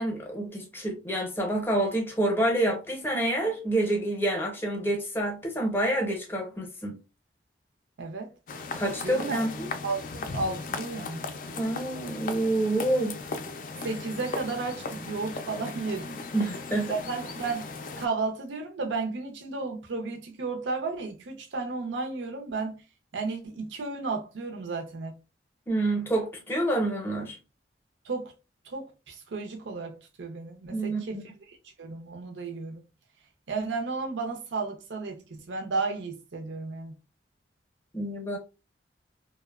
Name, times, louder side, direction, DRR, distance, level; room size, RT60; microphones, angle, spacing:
voice 1, 0.0-7.0 8.7-9.7 11.6-13.2 16.3-16.9 25.7-27.4 30.7-31.2 37.9-38.4, right 1 dB, 15° left, 0.6 m, -28 dB
voice 2, 8.0-8.3 9.0-9.4 9.8-11.3 13.8-16.2 16.9-17.7 18.0-22.8 23.1-25.2 28.0-28.3 28.6-31.2 31.5-32.8 33.5-36.9, right 3 dB, 85° right, 0.5 m, -33 dB
sound 1, 8.5-18.1, left 3 dB, 45° left, 0.3 m, -37 dB
2.8 x 2.1 x 2.2 m
head